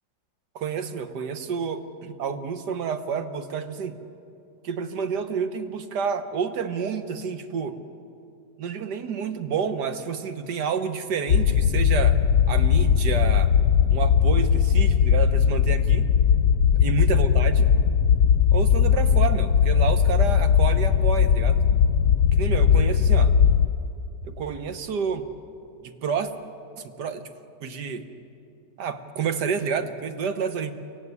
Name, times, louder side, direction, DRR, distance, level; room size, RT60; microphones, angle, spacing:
voice 1, 0.6-4.0 4.6-7.8 8.6-12.2 12.5-13.5 13.9-16.1 16.8-17.7 18.5-21.6 22.3-23.3 24.2-25.3 25.8-26.3 26.8-27.3 27.6-28.1 28.8-30.7, right 6 dB, 65° right, 9 dB, 1.7 m, -29 dB
sound 1, 11.3-23.7, left 7 dB, 65° left, 1.0 m, -19 dB
24.0 x 17.0 x 9.7 m, 2.5 s
omnidirectional pair, 2.1 m